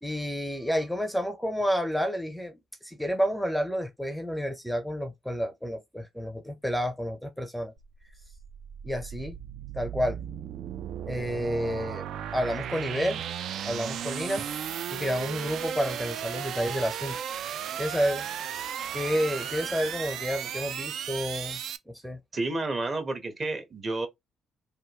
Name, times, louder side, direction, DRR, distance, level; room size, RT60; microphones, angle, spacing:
voice 1, 0.0-7.7 8.8-9.4 9.7-10.2 11.1-12.0 12.3-13.2 13.7-14.4 14.9-17.2 17.8-18.5 18.9-21.6 21.9-22.2, equal, ahead, 0.5 m, -30 dB
sound 1, 7.8-21.8, right 9 dB, 75° right, 0.3 m, -35 dB
voice 2, 22.3-24.1, right 2 dB, 40° right, 0.9 m, -30 dB
3.4 x 2.2 x 2.9 m
cardioid pair, 90°, 0 cm